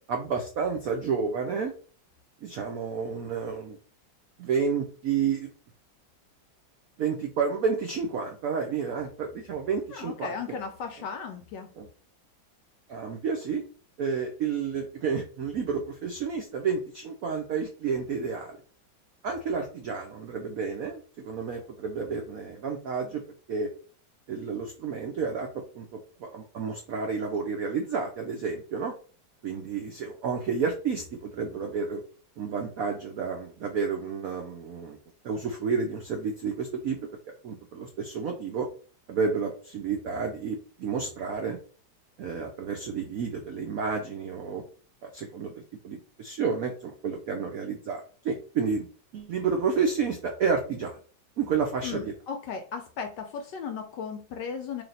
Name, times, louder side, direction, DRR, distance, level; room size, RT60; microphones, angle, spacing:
voice 1, 0.1-1.7 2.4-3.8 4.4-5.5 7.0-10.6 11.8-11.9 12.9-13.6 14.0-18.6 19.2-23.2 23.5-23.7 24.3-25.5 25.7-28.9 29.4-32.0 32.4-35.0 35.2-37.0 37.4-38.7 39.1-41.6 42.2-44.6 45.0-45.5 45.8-48.9 49.1-51.0 51.4-52.1, right 5 dB, 85° right, 3 dB, 0.7 m, -30 dB
voice 2, 9.9-11.7 51.8-54.8, left 6 dB, 75° left, 5 dB, 1.0 m, -36 dB
3.3 x 2.8 x 3.9 m, 0.40 s
omnidirectional pair, 2.2 m